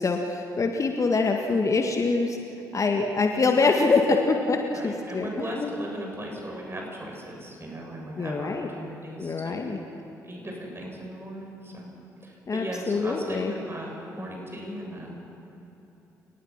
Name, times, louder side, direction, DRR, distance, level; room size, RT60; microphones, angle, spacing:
voice 1, 0.0-2.4 2.7-5.7 8.2-8.7 9.2-9.8 12.5-13.5, left 3 dB, 35° left, 3 dB, 1.8 m, -24 dB
voice 2, 4.7-9.9 10.2-11.9 12.2-15.1, right 1 dB, 25° right, 0 dB, 7.4 m, -38 dB
30.0 x 19.5 x 6.0 m, 3.0 s
figure-of-eight pair, 40°, 9 cm